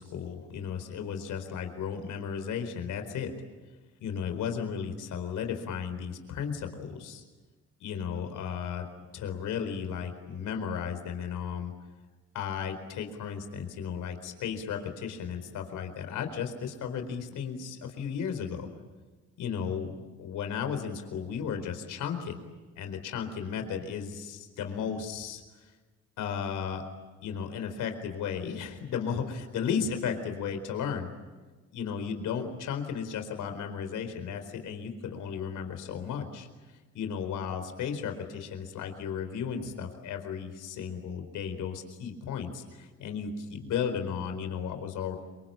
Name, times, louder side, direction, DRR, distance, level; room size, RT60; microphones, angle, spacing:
voice 1, 0.0-3.3 4.0-7.2 7.8-8.9 9.1-11.7 12.3-18.7 19.4-22.4 22.8-25.4 26.2-26.8 27.2-31.1 31.7-36.5 36.9-45.2, left 7 dB, 85° left, 7 dB, 4.4 m, -34 dB
27.5 x 24.0 x 8.9 m, 1.3 s
cardioid pair, 90°, 30 cm